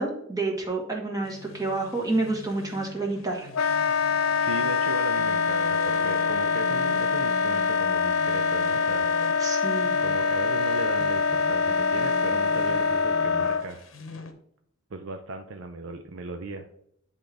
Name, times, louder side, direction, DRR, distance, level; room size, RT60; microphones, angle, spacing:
voice 1, 0.0-3.5 9.4-9.9, right 2 dB, 20° right, 0 dB, 1.3 m, -29 dB
sound 1, 1.2-14.3, left 3 dB, 70° left, 0.9 m, -42 dB
Wind instrument woodwind instrument, 3.5-13.7, left 5 dB, 85° left, 0.4 m, -24 dB
voice 2, 4.4-9.3 10.0-13.9 14.9-16.7, right 3 dB, 65° right, 5 dB, 0.5 m, -37 dB
9.9 x 3.7 x 3.4 m, 0.72 s
head